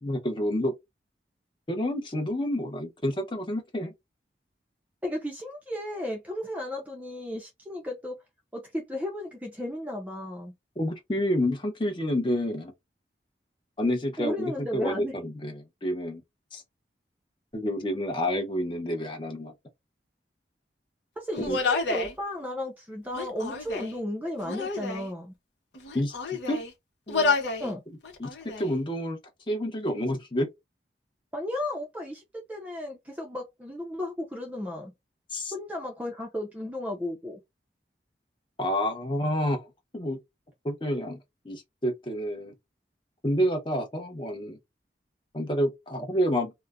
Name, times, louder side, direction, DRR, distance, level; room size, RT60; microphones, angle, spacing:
voice 1, 0.0-0.7 1.7-3.9 10.8-12.7 13.8-16.2 16.5-16.6 17.5-19.5 21.5-21.6 25.9-26.1 26.5-26.6 27.1-27.4 27.6-27.8 28.2-29.2 29.5-30.5 35.3-35.5 38.6-39.7 39.9-40.2 40.6-41.2 41.4-42.5 43.2-44.6 45.3-46.5, equal, 30° left, 0.7 m, -29 dB
voice 2, 5.0-8.2 8.5-10.5 14.2-15.1 21.2-25.4 27.6-27.8 31.3-34.9 35.5-37.4, left 1 dB, 10° right, 0.5 m, -34 dB
Human voice, 21.3-22.1 23.1-24.0 24.4-25.1 25.7-26.7 27.1-27.7 28.0-28.7, left 4 dB, 90° left, 0.8 m, -29 dB
2.4 x 2.1 x 3.4 m
head